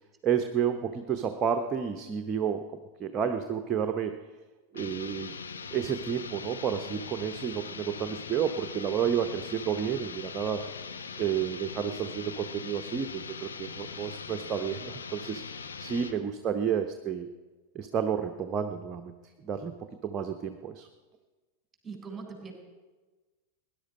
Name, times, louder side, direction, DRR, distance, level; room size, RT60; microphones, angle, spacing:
voice 1, 0.2-4.1 4.7-5.3 5.7-10.6 11.2-15.4 15.8-17.3 17.7-19.1 19.4-19.7 20.0-20.9, right 8 dB, 25° right, 7 dB, 0.7 m, -30 dB
sound 1, 4.7-16.2, left 5 dB, 70° left, 0.9 m, -41 dB
voice 2, 21.8-22.5, right 5 dB, 10° right, 2 dB, 4.0 m, -41 dB
18.0 x 10.5 x 5.2 m, 1.3 s
figure-of-eight pair, 90°, 0 cm